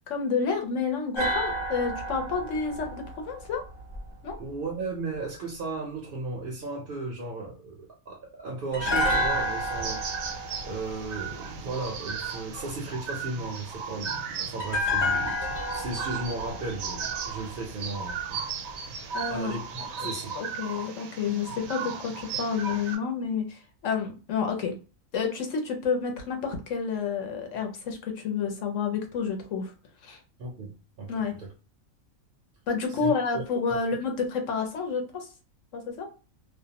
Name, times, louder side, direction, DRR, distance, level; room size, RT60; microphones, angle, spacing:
voice 1, 0.1-3.6 4.2-4.4 19.1-19.6 20.0-24.7 25.1-29.7 30.0-30.2 31.1-31.4 32.7-35.3 35.7-36.1, left 5 dB, 70° left, 1.0 m, -30 dB
sound 1, 1.1-4.3 8.7-11.9 14.6-17.8 18.1-18.2, left 1 dB, 45° left, 1.0 m, -31 dB
voice 2, 4.4-10.3 10.6-15.4 15.7-18.4 19.3-20.4 30.4-31.1 31.4-31.5 32.9-33.4, right 3 dB, 60° right, 0.6 m, -35 dB
sound 2, 8.9-23.0, right 6 dB, 80° right, 1.0 m, -36 dB
2.5 x 2.1 x 2.8 m
omnidirectional pair, 1.4 m